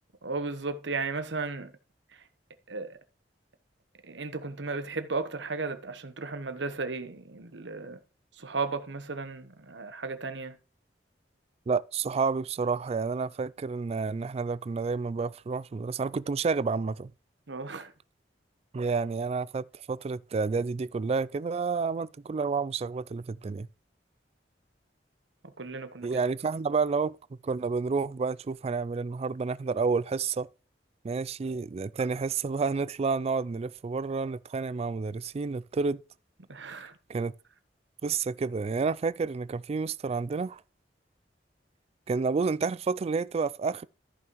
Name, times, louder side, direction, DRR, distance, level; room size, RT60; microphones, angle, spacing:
voice 1, 0.2-1.7 2.7-3.0 4.0-8.0 8.4-10.6 17.5-17.9 25.6-26.1 36.5-36.9, right 4 dB, 80° right, 1.1 m, -35 dB
voice 2, 11.7-17.1 18.7-23.7 26.0-27.2 27.4-30.5 31.0-36.0 37.1-37.3 38.0-40.6 42.1-43.9, right 4 dB, 35° right, 0.3 m, -30 dB
14.0 x 6.0 x 3.1 m
head